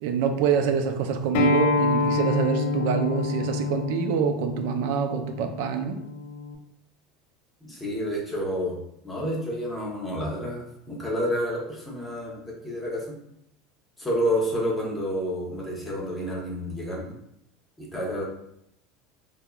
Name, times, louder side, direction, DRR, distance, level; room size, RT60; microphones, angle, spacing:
voice 1, 0.0-6.0, right 7 dB, 75° right, 6 dB, 0.4 m, -26 dB
Acoustic guitar, 1.3-6.5, left 4 dB, 80° left, 0.4 m, -27 dB
voice 2, 7.6-8.8 9.0-13.2 14.0-17.1 17.8-18.2, equal, 10° left, -3 dB, 0.8 m, -29 dB
3.4 x 2.0 x 2.3 m, 0.76 s
supercardioid pair, 135°, 0 cm